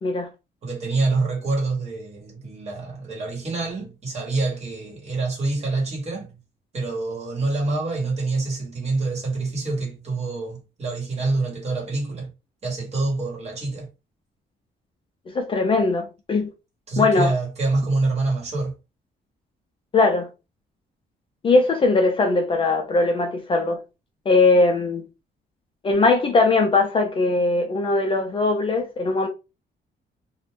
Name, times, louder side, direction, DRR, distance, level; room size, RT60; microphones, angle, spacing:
voice 1, 0.6-6.3 6.7-12.3 12.6-13.9 16.9-18.7, right 3 dB, 35° right, 1.4 m, -26 dB
voice 2, 15.3-16.5 17.0-17.3 19.9-20.3 21.4-23.8 24.3-25.0 25.8-29.3, left 3 dB, 30° left, 0.4 m, -20 dB
2.5 x 2.2 x 3.3 m
cardioid pair, 165°, 19 cm